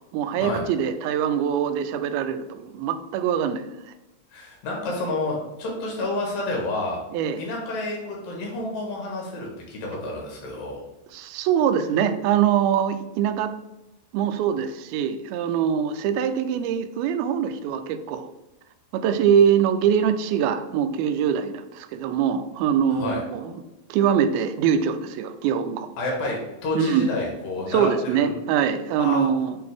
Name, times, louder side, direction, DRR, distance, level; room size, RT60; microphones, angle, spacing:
voice 1, 0.1-3.9 7.1-7.4 11.1-13.5 14.1-18.3 18.9-23.5 23.9-25.9 26.7-27.1 27.7-29.6, right 8 dB, 90° right, 9 dB, 2.4 m, -23 dB
voice 2, 4.3-7.0 7.4-10.8 22.9-23.2 26.0-28.3 29.0-29.3, left 2 dB, 75° left, -1 dB, 3.0 m, -29 dB
8.6 x 3.4 x 3.5 m, 0.96 s
omnidirectional pair, 4.2 m